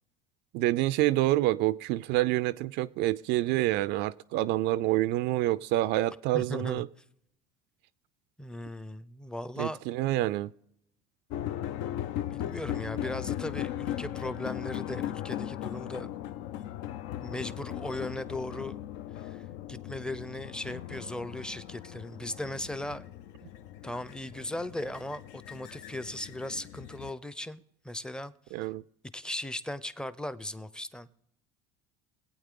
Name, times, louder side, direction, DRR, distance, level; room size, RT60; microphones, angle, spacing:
voice 1, 0.5-6.9 9.6-10.5 28.5-28.8, right 16 dB, 60° right, 0.4 m, -27 dB
voice 2, 6.3-6.8 8.4-9.8 12.1-16.1 17.2-18.8 19.2-23.0 23.8-28.3 29.1-31.1, left 1 dB, 5° left, 0.6 m, -38 dB
sound 1, 11.3-27.1, left 12 dB, 70° left, 0.6 m, -38 dB
22.0 x 8.6 x 3.8 m
supercardioid pair, 100°, 20 cm